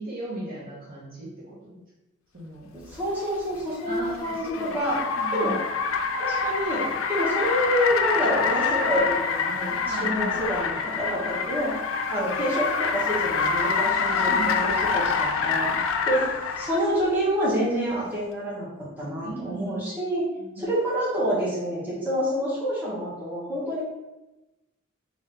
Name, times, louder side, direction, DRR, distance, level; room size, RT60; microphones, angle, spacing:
voice 1, 0.0-1.8 2.3-2.7 3.9-4.5 4.8-5.6 9.8-10.4 14.2-14.6 19.2-19.8 20.4-20.7, right 2 dB, 45° right, -6 dB, 0.9 m, -36 dB
voice 2, 2.7-5.0 5.3-5.5 6.2-11.7 12.1-16.2 16.6-18.7 19.0-20.2 20.6-23.8, equal, 10° right, -8 dB, 1.1 m, -27 dB
Car, 3.0-16.9, left 5 dB, 75° left, 0.3 m, -26 dB
3.5 x 2.6 x 3.3 m, 1.0 s
head